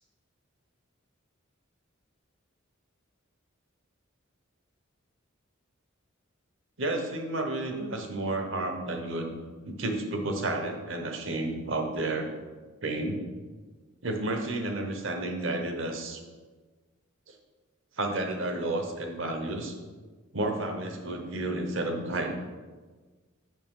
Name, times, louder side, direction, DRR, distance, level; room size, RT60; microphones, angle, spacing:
voice 1, 6.8-9.3 9.7-12.3 12.8-13.2 14.0-16.2 17.3-17.4 18.0-19.8 20.3-22.4, right 2 dB, 65° right, 4 dB, 1.0 m, -31 dB
7.5 x 5.2 x 3.7 m, 1.4 s
head